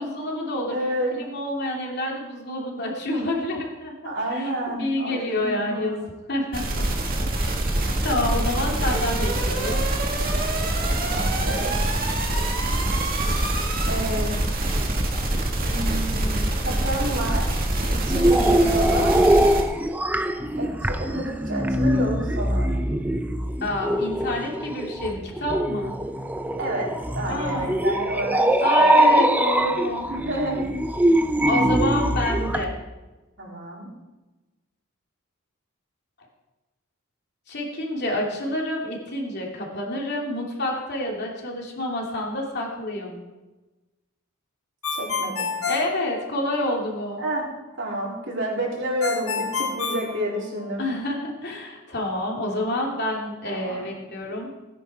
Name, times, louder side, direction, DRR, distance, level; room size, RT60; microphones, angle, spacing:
voice 1, 0.0-0.7 1.2-4.5 4.8-6.8 8.0-9.8 23.6-25.9 27.3-27.7 28.6-30.1 31.4-32.7 37.5-43.2 45.7-47.2 50.8-54.5, left 1 dB, 50° left, -1 dB, 2.9 m, -28 dB
voice 2, 0.7-1.1 4.0-5.9 8.5-8.8 11.0-12.1 13.9-14.4 15.6-16.4 16.6-19.1 20.6-22.7 26.6-28.4 28.7-29.3 30.1-30.7 33.4-33.9 44.9-45.6 47.2-47.4 47.8-50.8 53.4-54.0, right 1 dB, 60° right, -4 dB, 4.1 m, -30 dB
sound 1, 6.5-19.6, right 1 dB, 45° right, 1.9 m, -24 dB
sound 2, 18.0-32.6, right 1 dB, 10° right, 0.6 m, -22 dB
Ringtone, 44.8-46.8 49.0-50.9, left 5 dB, 85° left, 1.5 m, -28 dB
17.5 x 10.0 x 4.8 m, 1.1 s
head